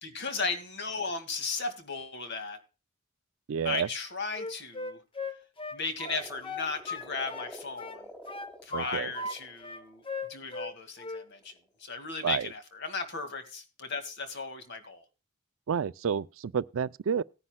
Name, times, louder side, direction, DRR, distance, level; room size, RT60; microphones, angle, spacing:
voice 1, 0.0-2.6 3.6-5.0 5.7-8.1 8.6-10.0 10.3-15.0, left 4 dB, 55° left, 2.0 m, -36 dB
voice 2, 3.5-3.9 8.7-9.1 12.2-12.5 15.7-17.2, right 7 dB, 75° right, 0.4 m, -30 dB
Wind instrument woodwind instrument, 4.3-7.5 7.8-9.4 9.6-10.7 11.0-11.3, left 3 dB, 25° left, 1.0 m, -38 dB
sound 1, 6.0-10.1 11.2-11.6, equal, 5° left, 2.5 m, -48 dB
18.0 x 9.8 x 2.2 m
head